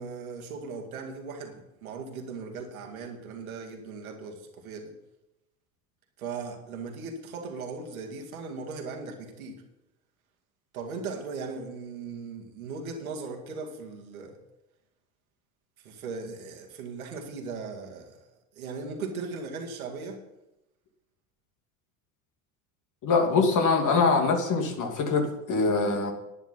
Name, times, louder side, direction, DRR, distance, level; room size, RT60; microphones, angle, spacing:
voice 1, 0.0-4.9 6.2-9.6 10.7-14.4 15.8-18.2 18.5-20.2, right 4 dB, 85° right, 1 dB, 2.3 m, -38 dB
voice 2, 23.0-26.1, left 4 dB, 45° left, 3 dB, 2.6 m, -23 dB
11.0 x 10.0 x 5.7 m, 0.91 s
hypercardioid pair, 75°, 41 cm